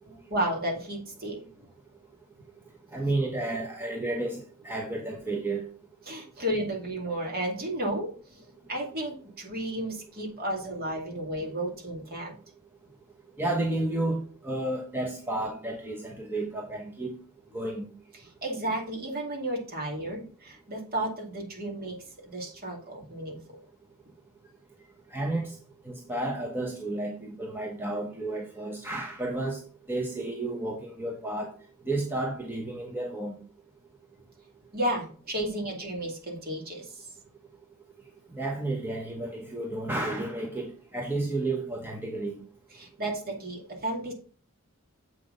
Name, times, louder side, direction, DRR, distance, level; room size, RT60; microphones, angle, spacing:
voice 1, 0.1-1.5 6.1-12.3 18.2-22.0 22.2-23.6 34.7-37.1 42.7-44.1, right 1 dB, 45° right, 2.4 m, -33 dB
voice 2, 2.9-5.7 13.4-17.2 17.5-17.9 25.1-25.5 25.9-29.6 29.9-31.5 31.9-33.3 38.3-42.4, right 2 dB, 10° right, 1.0 m, -31 dB
7.7 x 5.8 x 3.9 m
head